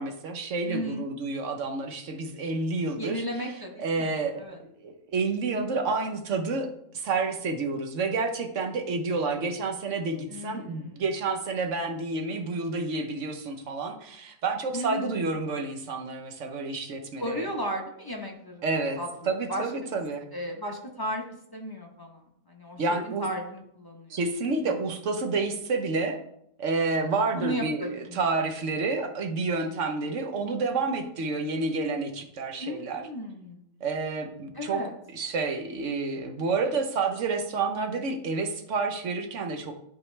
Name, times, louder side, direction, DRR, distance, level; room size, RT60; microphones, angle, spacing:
voice 1, 0.0-3.2 3.8-6.7 6.9-17.5 18.6-20.2 22.8-23.3 24.1-26.2 26.6-33.1 33.8-34.8 35.1-39.8, right 3 dB, 55° right, 5 dB, 1.0 m, -29 dB
voice 2, 0.7-1.0 3.0-4.1 4.4-4.6 10.3-11.0 14.7-15.2 17.2-18.6 19.0-19.7 20.3-21.2 21.5-22.2 22.5-24.2 24.6-24.9 27.3-28.2 28.8-28.9 32.6-33.6 34.5-34.9, equal, 20° left, 0 dB, 0.6 m, -35 dB
11.0 x 4.2 x 3.2 m, 0.73 s
omnidirectional pair, 1.7 m